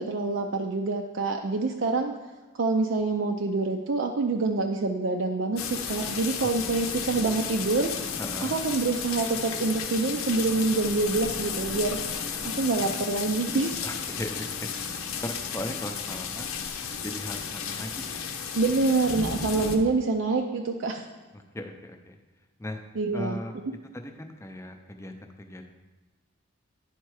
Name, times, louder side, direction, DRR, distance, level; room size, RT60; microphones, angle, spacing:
voice 1, 0.0-2.1 2.6-7.9 8.5-12.0 12.6-13.9 18.5-21.1 23.0-23.4, right 3 dB, 60° right, 3 dB, 0.5 m, -26 dB
sound 1, 5.6-19.8, left 6 dB, 90° left, 0.8 m, -33 dB
voice 2, 6.4-7.1 8.2-8.6 13.8-16.6 17.0-18.3 18.7-18.8 21.3-22.2 22.6-22.8 23.1-23.5 23.9-25.6, left 1 dB, 15° left, 5 dB, 0.5 m, -38 dB
10.0 x 4.4 x 4.8 m, 1.3 s
head